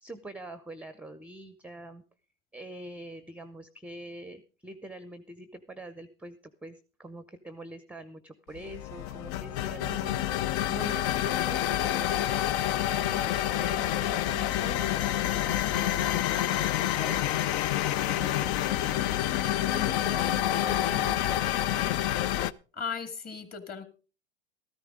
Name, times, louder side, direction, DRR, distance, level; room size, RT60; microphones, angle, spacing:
voice 1, 0.0-2.0 2.5-10.2 10.7-12.4 12.9-17.2 17.8-21.2, right 1 dB, 5° right, 12 dB, 0.7 m, -44 dB
sound 1, 8.5-22.5, left 13 dB, 55° left, 0.6 m, -28 dB
voice 2, 22.7-23.8, left 6 dB, 25° left, 8 dB, 2.1 m, -36 dB
13.5 x 13.0 x 3.7 m, 0.36 s
hypercardioid pair, 110°, 33 cm